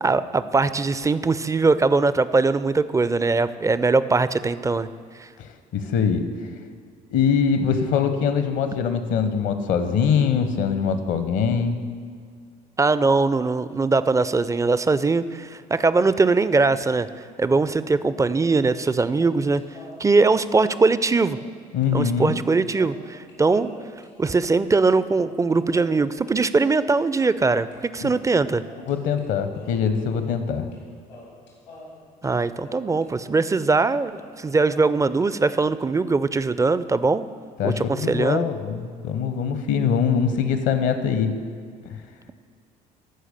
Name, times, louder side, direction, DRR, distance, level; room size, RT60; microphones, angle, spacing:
voice 1, 0.0-4.9 5.2-5.3 12.8-17.1 17.4-19.6 20.0-21.4 21.9-23.7 24.2-28.6 32.2-37.2 37.6-38.4, right 3 dB, 15° right, 14 dB, 0.4 m, -21 dB
voice 2, 5.4-6.2 7.1-11.8 21.7-22.3 28.0-28.1 28.9-30.7 37.6-41.3, left 6 dB, 65° left, 9 dB, 1.0 m, -23 dB
sound 1, 18.3-18.9 19.2-21.6 21.8-21.9 22.2-27.8 28.1-29.3 29.5-30.8 31.1-33.5 33.7-33.8 34.1-35.6, left 2 dB, 90° left, 2.3 m, -47 dB
13.0 x 4.8 x 6.6 m, 2.1 s
hypercardioid pair, 55°, 21 cm